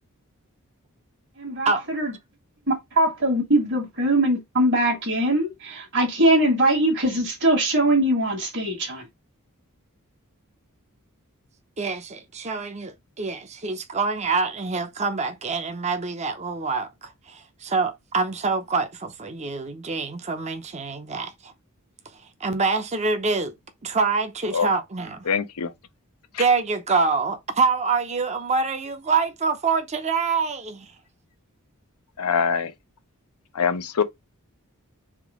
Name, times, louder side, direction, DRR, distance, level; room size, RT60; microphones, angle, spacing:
voice 1, 1.4-2.1 2.7-9.0, right 1 dB, 55° right, 1.6 m, -22 dB
voice 2, 11.8-21.5 22.1-23.5 23.8-25.3 26.4-30.9, right 4 dB, 30° right, 0.7 m, -26 dB
voice 3, 25.3-25.7 26.3-26.4 32.2-32.7 33.5-34.0, left 6 dB, 85° left, 0.7 m, -23 dB
3.7 x 2.9 x 4.8 m
head